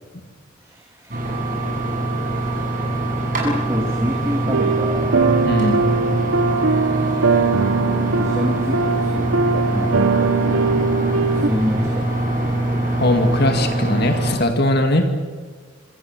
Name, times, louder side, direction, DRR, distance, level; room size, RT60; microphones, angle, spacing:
voice 1, 0.6-1.3 3.4-5.2 7.9-12.5, equal, 15° right, 2 dB, 2.3 m, -28 dB
sound 1, 1.1-14.3, right 1 dB, 40° right, 7.4 m, -23 dB
sound 2, 4.5-11.5, right 4 dB, 75° right, 1.2 m, -20 dB
voice 2, 5.5-5.8 13.0-15.1, left 1 dB, 50° left, 6 dB, 2.3 m, -19 dB
26.0 x 26.0 x 7.5 m, 1.5 s
head